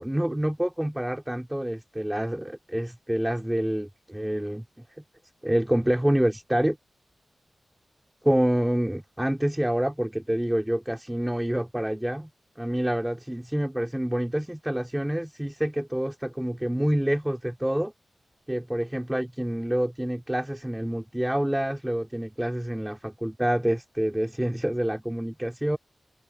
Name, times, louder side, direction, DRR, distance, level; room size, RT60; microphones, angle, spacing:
voice 1, 0.0-4.7 5.0-5.1 5.4-6.8 8.3-12.3 12.6-17.9 18.5-25.8, right 1 dB, 5° right, 3.9 m, -27 dB
open air
wide cardioid pair, 105°, 0 cm